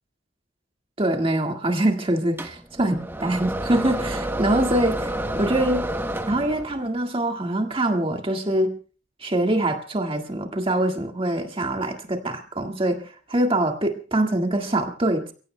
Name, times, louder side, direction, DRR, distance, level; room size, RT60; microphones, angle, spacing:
voice 1, 1.0-5.9 6.3-8.7 9.2-15.3, right 1 dB, 30° right, 3 dB, 1.8 m, -24 dB
sound 1, 2.4-6.9, right 1 dB, 10° right, 0.9 m, -29 dB
30.0 x 16.5 x 2.2 m, 0.39 s
head